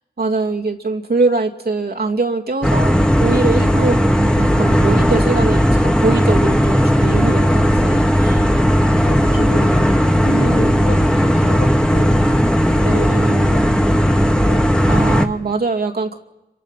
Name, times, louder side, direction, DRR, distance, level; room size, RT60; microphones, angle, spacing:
voice 1, 0.2-8.5 10.3-10.8 12.8-13.7 14.9-16.2, right 3 dB, 60° right, 1 dB, 2.4 m, -22 dB
sound 1, 2.6-15.3, equal, 5° left, 1.7 m, -15 dB
voice 2, 9.0-12.3 12.6-14.7, left 4 dB, 60° left, -1 dB, 2.0 m, -30 dB
26.5 x 24.0 x 5.8 m, 1.0 s
cardioid pair, 40°, 19 cm